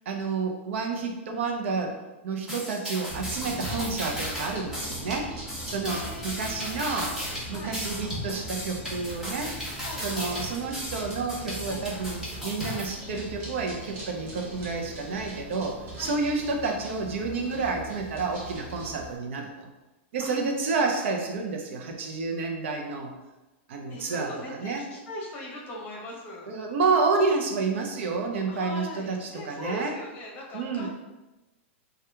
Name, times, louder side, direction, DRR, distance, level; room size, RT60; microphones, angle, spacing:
voice 1, 0.1-2.0 2.2-5.3 5.7-7.1 7.5-9.5 10.0-19.7 20.1-23.1 23.7-24.8 26.5-29.9 30.5-30.9, right 4 dB, 70° right, 3 dB, 0.6 m, -29 dB
sound 1, 2.5-12.9, equal, 5° right, 0.9 m, -35 dB
sound 2, 3.1-19.2, right 1 dB, 30° right, 1.0 m, -41 dB
voice 2, 5.8-7.8 9.8-10.1 11.7-11.9 16.0-16.2 20.2-20.4 23.9-26.5 28.5-30.9, left 1 dB, 25° left, -3 dB, 1.0 m, -40 dB
2.9 x 2.3 x 3.3 m, 1.1 s
hypercardioid pair, 135°, 7 cm